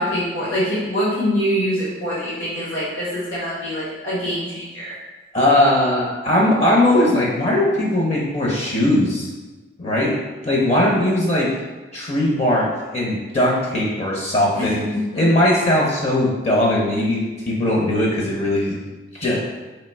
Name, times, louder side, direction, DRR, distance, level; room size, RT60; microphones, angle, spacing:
voice 1, 0.0-4.9 14.5-14.7, equal, 85° left, -8 dB, 1.3 m, -24 dB
voice 2, 5.3-9.3 9.8-10.2 10.4-11.5 11.9-14.8 15.1-18.8 19.2-19.4, left 1 dB, 35° left, -3 dB, 0.5 m, -19 dB
3.1 x 2.7 x 4.4 m, 1.2 s
head